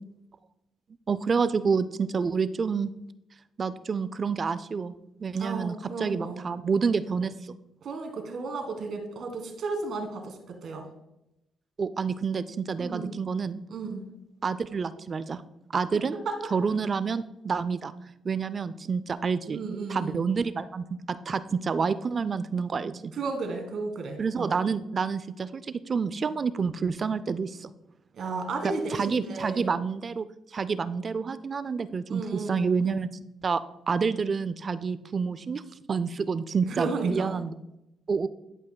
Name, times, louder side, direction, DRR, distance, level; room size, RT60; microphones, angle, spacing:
voice 1, 1.1-2.9 3.6-4.9 5.2-7.5 11.8-13.6 14.4-15.4 15.7-16.1 16.5-17.9 18.2-19.6 19.9-23.1 24.2-27.7 28.6-30.3 30.5-33.1 33.4-33.6 33.9-35.6 35.9-37.5 38.1-38.3, right 5 dB, 40° right, 14 dB, 0.3 m, -28 dB
voice 2, 5.4-6.4 7.8-10.9 12.8-13.1 13.7-14.1 16.2-16.4 19.5-20.1 23.1-24.6 28.1-29.7 32.1-32.6 36.6-37.3, right 3 dB, 60° right, 4 dB, 1.5 m, -33 dB
11.0 x 5.4 x 2.2 m, 0.88 s
cardioid pair, 90°, 0 cm